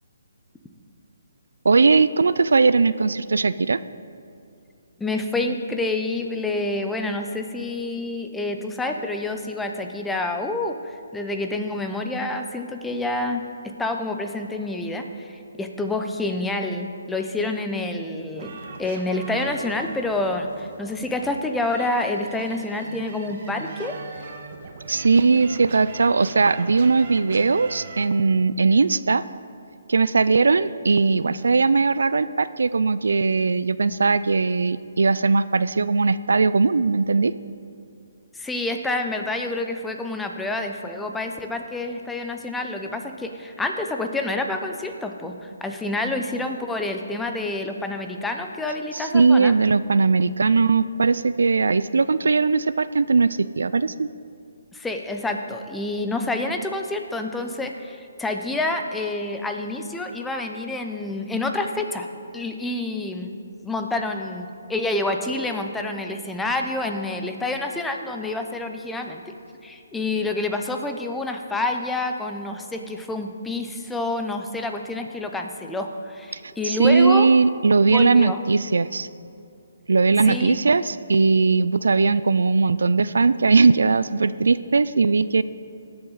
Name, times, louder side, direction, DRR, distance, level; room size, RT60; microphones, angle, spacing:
voice 1, 1.6-3.8 24.9-29.2 29.9-37.3 49.1-54.1 76.3-79.1 79.9-85.4, right 4 dB, 80° right, 15 dB, 0.3 m, -19 dB
voice 2, 5.0-23.9 38.3-49.5 54.7-62.1 62.3-63.4 63.6-69.2 69.6-77.3 77.9-78.4 80.2-80.6, left 2 dB, 5° left, 4 dB, 0.6 m, -28 dB
sound 1, 18.4-28.0, right 4 dB, 50° right, 1.2 m, -41 dB
18.5 x 6.9 x 4.0 m, 2.6 s
hypercardioid pair, 150°, 0 cm